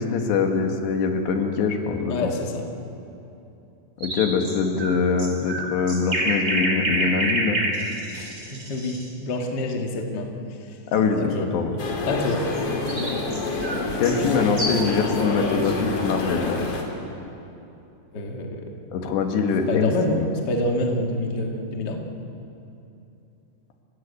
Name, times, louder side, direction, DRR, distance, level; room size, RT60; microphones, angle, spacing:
voice 1, 0.0-2.3 4.0-7.6 10.9-11.7 14.0-16.6 18.9-20.3, left 5 dB, 85° left, 4 dB, 4.0 m, -23 dB
voice 2, 2.1-2.6 8.1-10.3 11.2-11.5 12.1-12.4 18.1-18.6 19.7-22.0, left 1 dB, 35° left, 1 dB, 1.8 m, -27 dB
sound 1, 4.0-9.1 12.5-15.0, right 1 dB, 20° right, 3.2 m, -28 dB
sound 2, 11.8-16.8, left 3 dB, 50° left, 4.0 m, -27 dB
30.0 x 16.0 x 8.4 m, 2.8 s
omnidirectional pair, 4.8 m